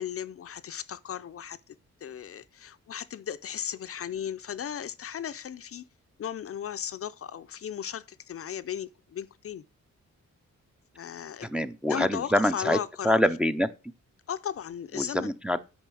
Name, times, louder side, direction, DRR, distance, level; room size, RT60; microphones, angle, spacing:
voice 1, 0.0-1.8 2.0-5.8 6.2-9.6 11.0-11.5 11.9-13.2 14.3-15.3, left 9 dB, 50° left, 0.5 m, -36 dB
voice 2, 11.4-12.8 13.0-13.7 15.0-15.6, left 1 dB, 5° right, 0.5 m, -25 dB
9.0 x 5.5 x 6.1 m
wide cardioid pair, 145°, 30 cm